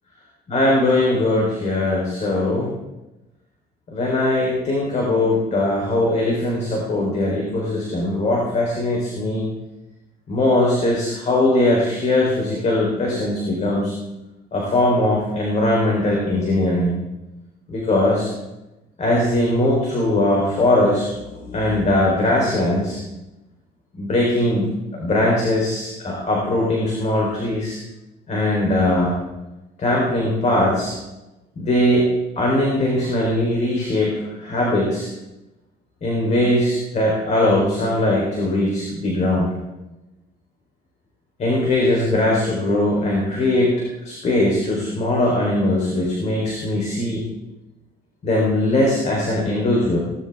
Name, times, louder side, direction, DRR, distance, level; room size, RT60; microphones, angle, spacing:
voice 1, 0.5-2.7 3.9-9.5 10.3-13.9 14.5-17.0 17.7-18.3 19.0-23.0 23.9-24.7 24.9-27.8 28.3-29.2 29.8-31.0 31.6-32.1 32.4-35.1 36.0-39.5 41.4-43.7 44.0-47.2 48.2-50.0, left 1 dB, 45° left, -2 dB, 3.8 m, -20 dB
18.0 x 12.0 x 3.6 m, 0.99 s
cardioid pair, 110°, 17 cm